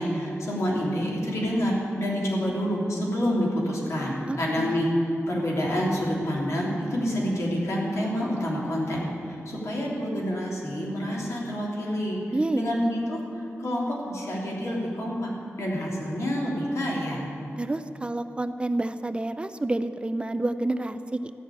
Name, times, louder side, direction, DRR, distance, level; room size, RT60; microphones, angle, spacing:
voice 1, 0.0-4.9 5.3-12.2 12.5-15.3 15.6-17.2, equal, 75° left, -4 dB, 3.1 m, -28 dB
voice 2, 4.3-4.8 12.3-12.7 17.6-21.3, right 2 dB, 20° right, 10 dB, 0.4 m, -29 dB
14.0 x 6.2 x 10.0 m, 2.8 s
wide cardioid pair, 135°, 5 cm